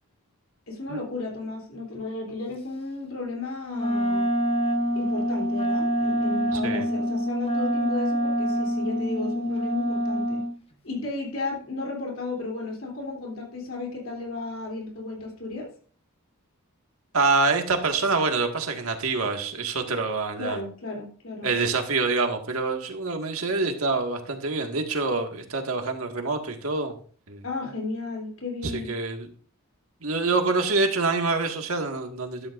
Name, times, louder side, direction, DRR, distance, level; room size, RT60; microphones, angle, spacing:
voice 1, 0.7-4.3 4.9-10.4 10.8-15.7 20.4-21.5 27.4-28.9, left 3 dB, 65° left, -1 dB, 3.3 m, -34 dB
Wind instrument woodwind instrument, 3.7-10.5, equal, 30° left, 1.2 m, -26 dB
voice 2, 17.1-20.6 21.4-26.9 27.3-27.4 28.9-29.3 30.0-32.5, right 3 dB, 75° right, 4 dB, 1.8 m, -26 dB
13.0 x 13.0 x 2.5 m, 0.43 s
head